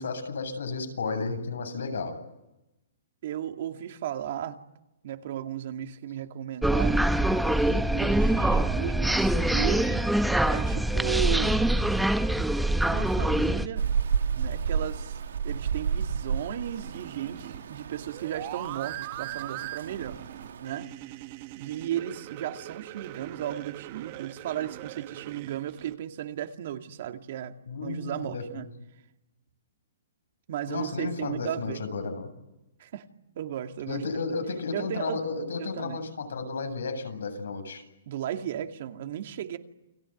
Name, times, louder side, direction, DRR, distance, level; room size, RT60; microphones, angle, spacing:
voice 1, 0.0-2.1 27.7-28.7 30.7-32.3 33.9-37.8, left 4 dB, 90° left, 6 dB, 7.8 m, -33 dB
voice 2, 3.2-4.6 5.0-7.0 7.7-10.0 10.5-11.7 12.8-13.9 14.3-20.2 20.6-20.9 21.5-27.6 27.8-28.7 30.5-31.8 32.8-33.1 33.4-34.1 34.7-35.2 35.6-36.0 38.1-39.6, right 11 dB, 50° right, 6 dB, 2.3 m, -35 dB
sound 1, 6.6-13.7, right 1 dB, ahead, 1.0 m, -24 dB
Rain, 13.8-20.8, right 6 dB, 80° right, 1.7 m, -32 dB
sound 2, 16.8-26.0, right 17 dB, 35° right, 1.1 m, -41 dB
29.5 x 21.0 x 9.4 m, 0.90 s
hypercardioid pair, 160°, 0 cm